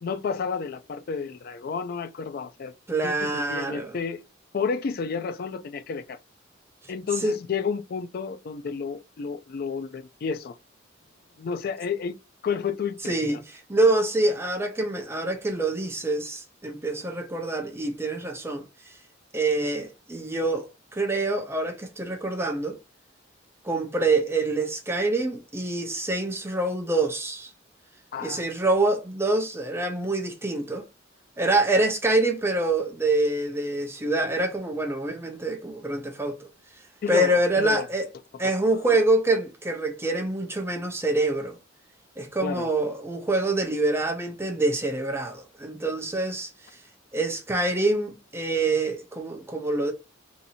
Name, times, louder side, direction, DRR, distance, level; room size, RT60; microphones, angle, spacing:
voice 1, 0.0-2.7 3.0-4.2 4.5-6.2 6.9-10.6 11.4-12.1 12.4-13.4 28.1-28.4 37.0-37.9 38.7-39.0 42.4-42.7, left 5 dB, 50° left, 0.3 m, -31 dB
voice 2, 2.9-4.0 7.2-7.3 13.1-18.6 19.3-22.8 23.6-27.5 28.2-30.8 31.4-36.5 37.1-38.1 38.4-41.6 42.2-46.5 47.1-49.9, right 2 dB, 15° right, 0.6 m, -26 dB
2.8 x 2.6 x 4.0 m
head